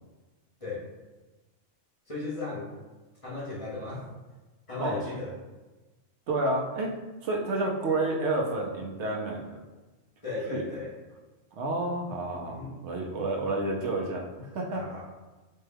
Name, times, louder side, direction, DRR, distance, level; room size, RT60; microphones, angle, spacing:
voice 1, 2.1-2.7 3.2-4.1 4.7-5.4 10.2-10.9 12.4-12.8 14.7-15.0, left 3 dB, 30° left, -7 dB, 0.9 m, -36 dB
voice 2, 6.3-6.9 7.2-9.4 10.5-10.6 11.6-12.6 12.8-15.0, right 2 dB, 80° right, 0 dB, 0.9 m, -30 dB
4.3 x 2.2 x 3.3 m, 1.2 s
omnidirectional pair, 1.2 m